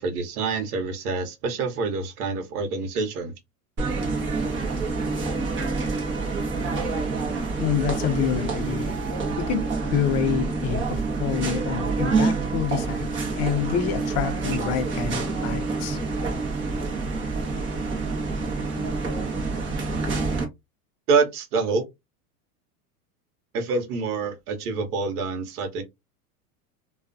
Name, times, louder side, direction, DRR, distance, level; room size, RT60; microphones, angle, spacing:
voice 1, 0.0-3.3 21.1-21.8 23.5-25.8, right 4 dB, 80° right, 1.0 m, -26 dB
sound 1, 3.8-20.4, right 3 dB, 25° right, 0.8 m, -27 dB
voice 2, 7.6-9.0 9.4-9.6 9.9-13.1 13.4-16.0, left 8 dB, 35° left, 0.6 m, -27 dB
2.3 x 2.3 x 2.5 m
supercardioid pair, 125°, 45 cm